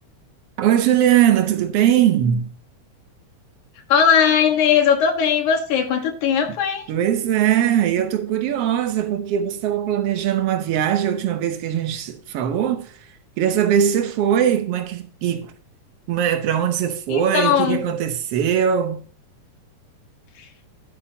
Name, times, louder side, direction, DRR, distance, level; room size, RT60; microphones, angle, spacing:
voice 1, 0.6-2.5 6.9-12.9 13.4-15.5 16.1-19.0, right 10 dB, 90° right, 1.3 m, -20 dB
voice 2, 3.9-6.8 17.1-17.8 20.4-20.5, left 7 dB, 65° left, 2.8 m, -19 dB
11.0 x 8.7 x 2.8 m
omnidirectional pair, 3.9 m